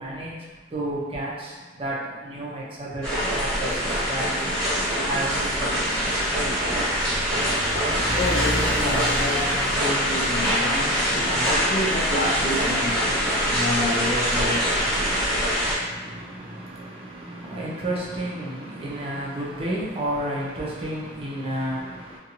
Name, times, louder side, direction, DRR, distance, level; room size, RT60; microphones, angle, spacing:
voice 1, 0.0-4.5 5.0-7.3 15.8-22.2, right 1 dB, 30° right, -5 dB, 0.5 m, -32 dB
sound 1, 3.0-15.7, equal, 5° left, 1.1 m, -24 dB
sound 2, 5.2-13.5, equal, 20° left, 0.8 m, -36 dB
voice 2, 8.1-9.5 9.8-13.0 13.5-14.9, left 1 dB, 40° left, -4 dB, 0.5 m, -29 dB
2.6 x 2.3 x 2.8 m, 1.4 s
head